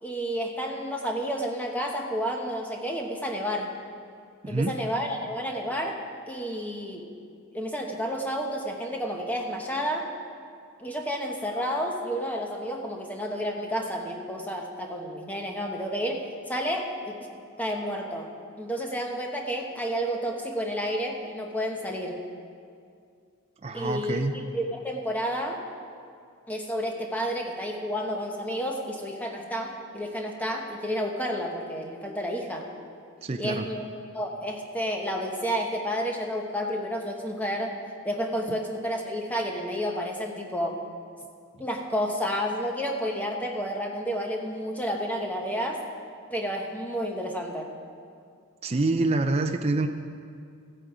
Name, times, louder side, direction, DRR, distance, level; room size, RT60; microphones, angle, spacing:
voice 1, 0.0-3.7 4.5-7.1 7.5-10.1 10.8-17.3 17.6-18.3 18.6-22.2 23.7-25.6 26.5-32.7 33.4-33.8 34.1-37.7 38.0-40.8 41.6-45.8 46.3-47.7, equal, 5° left, 1 dB, 1.0 m, -30 dB
voice 2, 23.6-24.3 33.2-33.7 48.6-49.9, right 2 dB, 30° right, 5 dB, 0.4 m, -26 dB
14.5 x 9.0 x 4.9 m, 2.3 s
head